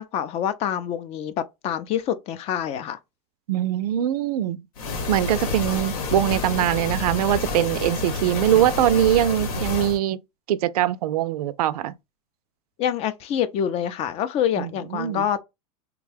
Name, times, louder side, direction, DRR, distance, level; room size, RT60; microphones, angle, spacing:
voice 1, 0.0-3.0 12.8-15.4, left 9 dB, 35° left, 0.5 m, -26 dB
voice 2, 3.5-4.6 5.1-10.2 10.5-11.9 14.6-15.3, right 12 dB, 90° right, 0.4 m, -22 dB
sound 1, 4.8-10.0, left 3 dB, 70° left, 1.1 m, -29 dB
3.4 x 2.2 x 3.3 m
supercardioid pair, 140°, 19 cm